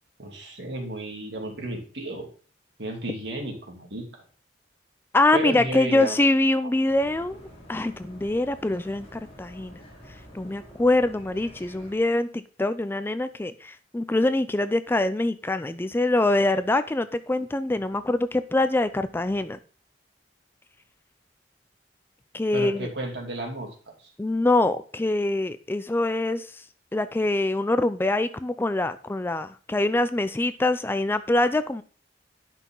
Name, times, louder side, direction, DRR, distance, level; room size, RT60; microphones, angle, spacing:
voice 1, 0.2-2.3 2.8-4.1 5.3-6.2 22.5-23.7 24.0-24.1, right 1 dB, 65° right, 1 dB, 2.5 m, -33 dB
voice 2, 5.1-7.4 7.7-9.8 10.3-19.6 22.3-22.9 24.2-26.6 26.9-31.8, left 2 dB, 10° left, 12 dB, 0.3 m, -24 dB
sound 1, 6.9-11.9, equal, 35° left, 3.7 m, -48 dB
10.5 x 5.9 x 3.8 m, 0.40 s
head